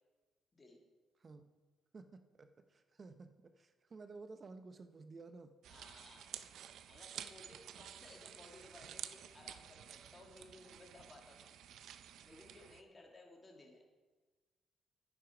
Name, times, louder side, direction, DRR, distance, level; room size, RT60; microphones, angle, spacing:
voice 1, 1.9-5.5, right 3 dB, 40° right, 9 dB, 0.7 m, -54 dB
sound 1, 5.6-12.8, right 9 dB, 75° right, 0.5 m, -51 dB
voice 2, 5.7-6.3 6.9-11.5 12.2-13.8, left 2 dB, 25° left, 0 dB, 2.5 m, -59 dB
11.0 x 9.7 x 5.0 m, 1.3 s
cardioid pair, 90°, 0 cm